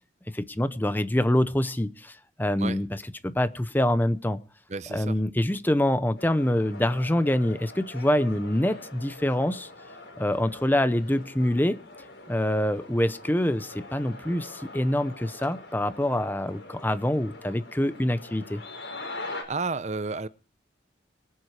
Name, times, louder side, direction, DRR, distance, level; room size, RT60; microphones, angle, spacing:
voice 1, 0.3-2.9 3.2-4.4 4.9-9.7 10.2-11.8 12.3-18.6, left 1 dB, 10° left, 13 dB, 0.7 m, -25 dB
voice 2, 4.7-5.2 19.2-20.3, right 4 dB, 40° right, 15 dB, 0.6 m, -32 dB
sound 1, 6.2-19.4, left 2 dB, 85° left, 4.7 m, -43 dB
23.0 x 7.8 x 4.8 m, 0.36 s
head